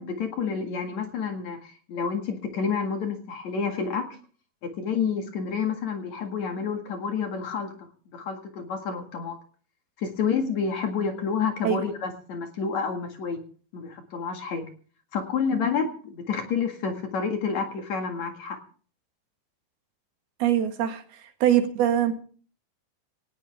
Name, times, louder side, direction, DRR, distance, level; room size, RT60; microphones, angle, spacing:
voice 1, 0.0-4.1 4.6-7.7 8.1-9.4 10.0-13.4 13.7-14.7 15.1-18.6, left 6 dB, 55° left, 4 dB, 2.9 m, -29 dB
voice 2, 20.4-22.1, right 10 dB, 80° right, 6 dB, 3.7 m, -23 dB
18.5 x 17.5 x 3.6 m, 0.43 s
omnidirectional pair, 4.3 m